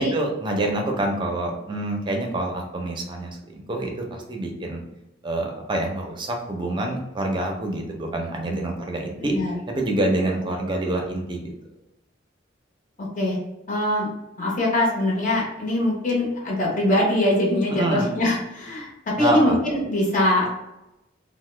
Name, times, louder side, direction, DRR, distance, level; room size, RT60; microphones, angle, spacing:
voice 1, 0.0-4.8 5.2-9.3 9.7-11.5 17.7-18.1 19.2-19.6, right 1 dB, 25° right, 1 dB, 0.5 m, -26 dB
voice 2, 9.2-9.6 13.0-13.4 13.7-14.1 14.4-18.9 19.2-20.5, left 1 dB, 45° left, -4 dB, 0.8 m, -22 dB
2.9 x 2.1 x 3.1 m, 0.94 s
head